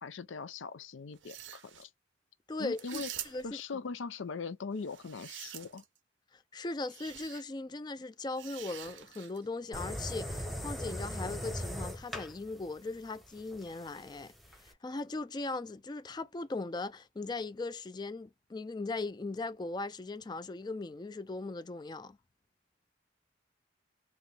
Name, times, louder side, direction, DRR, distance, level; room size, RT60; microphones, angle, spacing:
voice 1, 0.0-1.9 2.6-3.1 3.4-5.8, left 4 dB, 85° left, 0.5 m, -40 dB
sound 1, 1.1-1.9 2.8-3.6 4.8-6.0 6.9-7.4 8.4-9.5, right 11 dB, 75° right, 0.6 m, -46 dB
voice 2, 2.5-3.5 6.3-14.3 14.6-22.2, left 3 dB, 20° left, 0.3 m, -39 dB
sound 2, 9.7-14.7, equal, ahead, 0.8 m, -40 dB
3.9 x 2.8 x 3.4 m
head